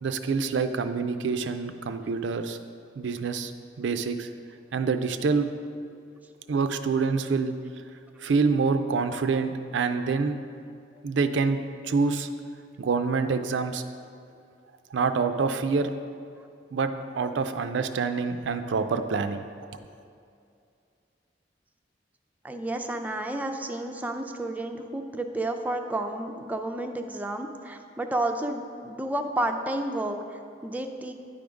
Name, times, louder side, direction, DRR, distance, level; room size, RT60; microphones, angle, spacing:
voice 1, 0.0-2.6 3.0-3.5 3.8-4.3 4.7-5.5 6.5-7.6 8.2-10.4 11.0-12.3 12.8-13.8 14.9-15.9 16.7-19.4, right 4 dB, 85° right, 9 dB, 0.4 m, -26 dB
voice 2, 22.4-31.1, right 1 dB, 10° right, 4 dB, 0.4 m, -31 dB
10.0 x 3.5 x 5.1 m, 2.4 s
head